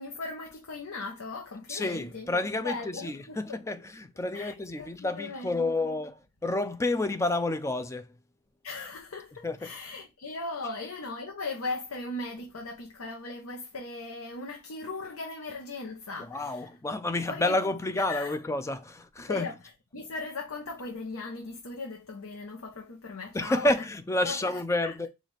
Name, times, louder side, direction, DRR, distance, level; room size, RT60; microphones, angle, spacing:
voice 1, 0.0-3.6 4.3-5.9 8.6-16.8 17.3-17.6 17.9-18.4 19.2-23.7 24.2-24.9, left 3 dB, 80° left, 0.8 m, -38 dB
voice 2, 1.7-2.7 3.0-6.1 6.4-8.1 9.4-9.7 16.3-19.5 23.3-25.1, left 2 dB, 15° left, 0.3 m, -29 dB
5.0 x 2.5 x 4.0 m
head